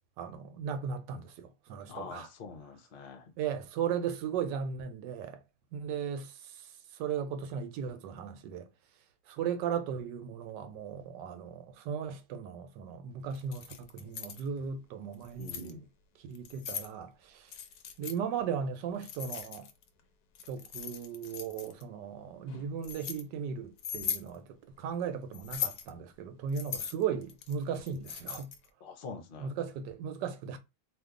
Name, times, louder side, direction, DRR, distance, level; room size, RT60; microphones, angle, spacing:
voice 1, 0.2-2.3 3.4-5.4 5.7-8.7 9.3-15.9 16.2-17.5 18.0-19.7 20.5-28.5 29.4-30.6, right 7 dB, 80° right, 1.2 m, -37 dB
voice 2, 1.9-3.3 15.4-15.9 28.8-29.5, left 4 dB, 50° left, 0.7 m, -45 dB
Keys jangling, 13.4-14.4 15.1-15.7 16.4-16.9 17.5-18.2 19.0-19.9 20.4-21.8 22.5-23.2 23.8-24.3 25.3-25.9 26.5-28.7, left 8 dB, 70° left, 1.1 m, -39 dB
2.8 x 2.6 x 3.6 m
omnidirectional pair, 1.8 m